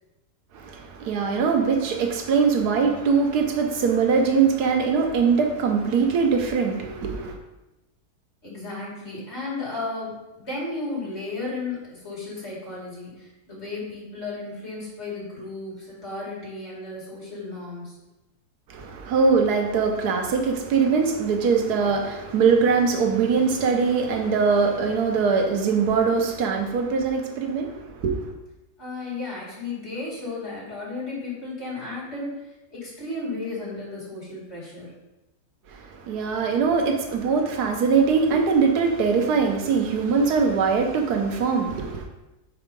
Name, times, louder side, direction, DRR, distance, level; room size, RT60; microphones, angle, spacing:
voice 1, 0.5-7.4 18.7-28.3 35.7-42.1, right 5 dB, 85° right, 1.3 m, -22 dB
voice 2, 8.4-17.9 28.8-32.4 32.7-34.9, left 3 dB, 45° left, 2.5 m, -34 dB
4.8 x 4.6 x 5.2 m
omnidirectional pair, 1.6 m